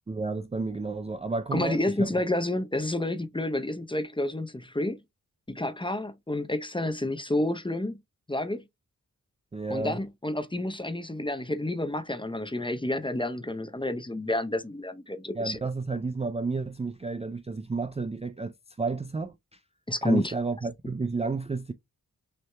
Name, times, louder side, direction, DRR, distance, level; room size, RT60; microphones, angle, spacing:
voice 1, 0.1-2.1 9.5-10.0 15.3-19.6 20.0-21.7, right 4 dB, 20° right, 0.4 m, -31 dB
voice 2, 1.5-5.0 5.5-8.0 8.3-8.6 9.7-15.6 19.9-20.3, left 1 dB, 15° left, 0.7 m, -29 dB
6.4 x 2.7 x 2.2 m
cardioid pair, 45°, 37 cm